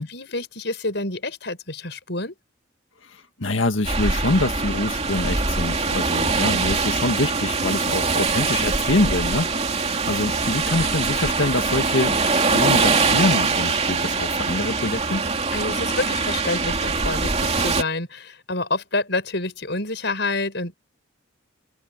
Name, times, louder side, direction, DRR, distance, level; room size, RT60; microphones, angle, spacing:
voice 1, 0.0-2.3 15.5-20.7, left 2 dB, 60° left, 7.5 m, -28 dB
voice 2, 3.0-15.3, left 2 dB, 75° left, 1.8 m, -25 dB
sound 1, 3.8-17.8, right 4 dB, 35° right, 2.8 m, -23 dB
open air
head